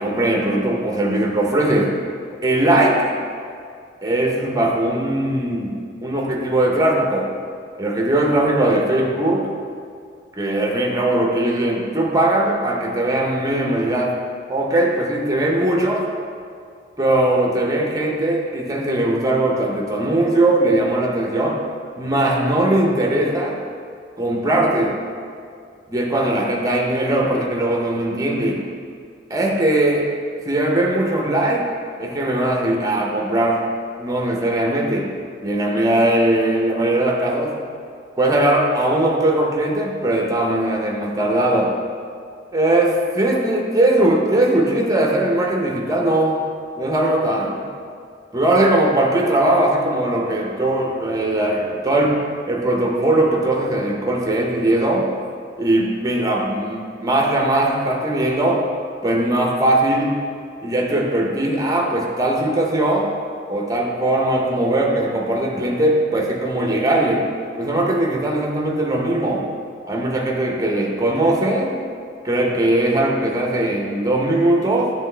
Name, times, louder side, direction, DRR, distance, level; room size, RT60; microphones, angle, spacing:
voice 1, 0.0-1.9 2.4-3.2 4.0-7.3 7.8-9.5 10.3-14.2 14.5-16.1 17.0-21.6 22.0-23.6 24.2-24.9 25.9-28.6 29.3-30.1 30.5-31.7 32.0-33.6 34.0-35.1 35.4-37.6 38.2-41.7 42.5-46.4 46.8-47.6 48.3-55.1 55.6-58.6 59.0-60.2 60.6-63.1 63.5-67.3 67.6-69.4 69.9-71.7 72.2-74.9, right 1 dB, 20° right, -1 dB, 0.6 m, -19 dB
9.1 x 3.2 x 3.2 m, 2.2 s
head